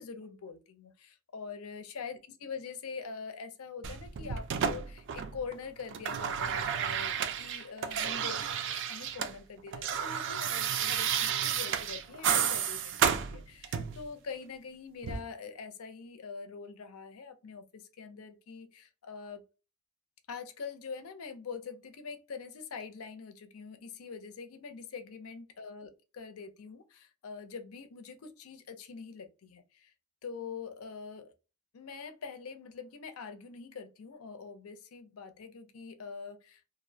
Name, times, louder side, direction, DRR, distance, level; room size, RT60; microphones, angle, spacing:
voice 1, 0.0-8.4 8.9-19.4 20.3-29.9 30.2-31.3 31.7-36.7, left 5 dB, 85° left, 0.5 m, -44 dB
sound 1, 3.8-5.5 5.8-9.3 9.6-14.0 15.0-15.2, right 8 dB, 60° right, 0.3 m, -32 dB
2.4 x 2.0 x 2.6 m
head